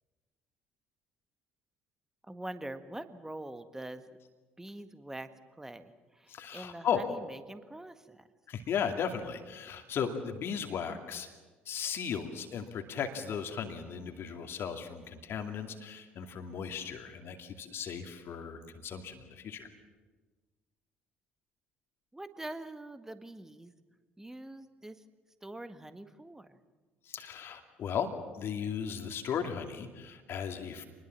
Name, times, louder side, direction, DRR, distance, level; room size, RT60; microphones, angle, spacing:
voice 1, 2.3-4.0 4.6-5.3 5.6-8.3 22.1-23.7 24.2-25.0 25.4-26.6, right 1 dB, 10° right, 10 dB, 1.7 m, -44 dB
voice 2, 6.3-7.1 8.5-11.3 11.7-19.7 27.1-30.8, left 7 dB, 45° left, 6 dB, 2.4 m, -36 dB
27.0 x 20.5 x 7.5 m, 1.3 s
figure-of-eight pair, 55°, 6 cm